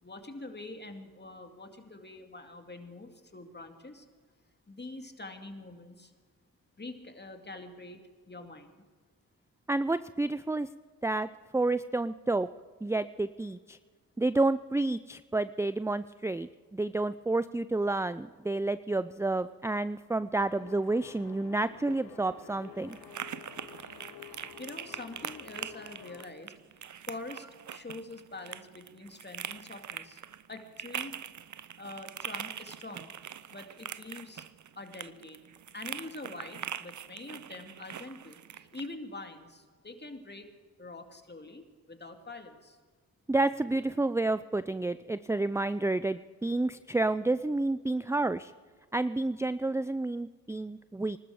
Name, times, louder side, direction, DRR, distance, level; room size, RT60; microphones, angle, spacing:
voice 1, 0.0-4.1 4.7-6.1 6.8-8.0 8.3-8.8 24.6-30.2 30.5-31.1 31.8-33.1 33.5-34.5 34.8-35.4 35.7-40.5 40.8-42.8, left 2 dB, 30° left, 5 dB, 2.4 m, -45 dB
voice 2, 9.7-10.7 11.0-12.5 12.8-13.8 14.2-23.0 43.3-48.5 48.9-51.2, right 2 dB, 10° right, 14 dB, 0.5 m, -30 dB
sound 1, 20.5-26.2, left 9 dB, 90° left, 1.1 m, -50 dB
sound 2, 21.7-38.9, right 9 dB, 55° right, 0.7 m, -43 dB
20.5 x 12.5 x 5.0 m, 1.5 s
supercardioid pair, 45°, 35 cm